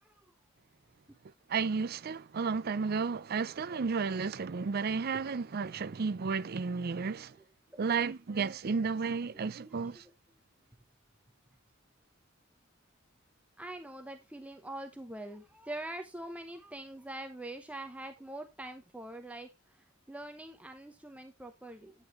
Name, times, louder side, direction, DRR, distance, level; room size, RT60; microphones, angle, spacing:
voice 1, 1.5-7.3 7.8-10.0, right 5 dB, 50° right, 0.5 m, -32 dB
voice 2, 7.0-7.3 7.7-7.8 9.6-10.1 13.6-21.9, right 1 dB, 5° right, 0.9 m, -44 dB
9.8 x 9.5 x 3.1 m
head